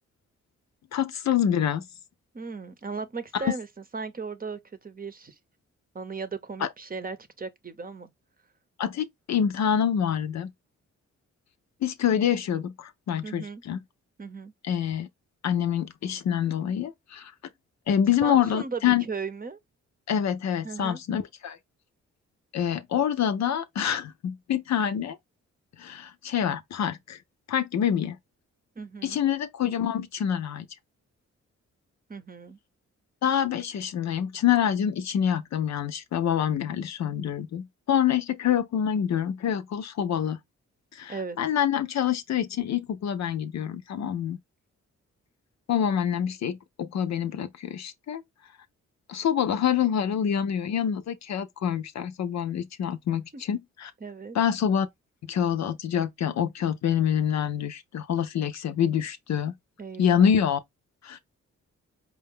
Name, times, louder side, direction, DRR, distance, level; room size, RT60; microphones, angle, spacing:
voice 1, 0.9-1.8 3.3-3.5 6.6-6.7 8.8-10.5 11.8-13.8 14.6-15.1 15.4-17.3 17.9-19.0 20.1-21.6 22.5-25.2 25.8-27.2 27.5-28.2 29.0-30.7 33.2-40.4 40.9-44.4 45.7-48.2 49.1-53.9 54.3-54.9 55.2-59.5 60.0-60.6 61.0-61.2, left 9 dB, 65° left, 0.6 m, -26 dB
voice 2, 2.3-3.7 3.9-5.3 5.9-8.1 13.2-13.6 14.2-14.5 18.2-19.6 20.6-21.0 28.8-29.2 32.1-32.6 41.1-41.4 53.3-53.4 54.0-54.4 59.8-60.3, right 4 dB, 30° right, 0.8 m, -36 dB
4.7 x 2.2 x 3.5 m
cardioid pair, 60°, 30 cm